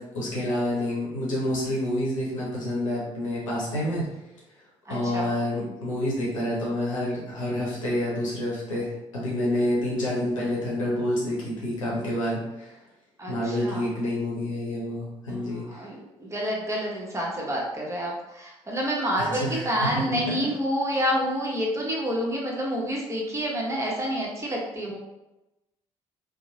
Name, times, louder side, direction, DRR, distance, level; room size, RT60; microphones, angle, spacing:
voice 1, 0.0-4.0 4.9-12.7 13.3-15.8 19.2-20.3, left 1 dB, 85° left, -6 dB, 0.7 m, -28 dB
voice 2, 4.8-5.3 13.2-13.9 15.3-25.0, equal, 20° right, -3 dB, 0.9 m, -28 dB
2.7 x 2.0 x 2.8 m, 0.99 s
figure-of-eight pair, 50°, 16 cm